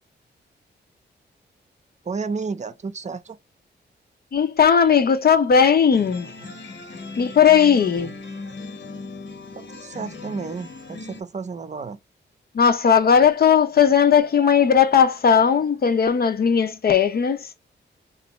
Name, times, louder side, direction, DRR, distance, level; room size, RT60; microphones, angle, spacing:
voice 1, 2.0-3.4 8.0-8.1 9.6-12.0, right 4 dB, 40° right, 0.6 m, -32 dB
voice 2, 4.3-6.3 7.2-8.1 12.5-17.5, left 7 dB, 55° left, 0.6 m, -17 dB
sound 1, 5.9-11.2, left 3 dB, 75° left, 1.0 m, -38 dB
2.9 x 2.5 x 3.0 m
cardioid pair, 80°, 19 cm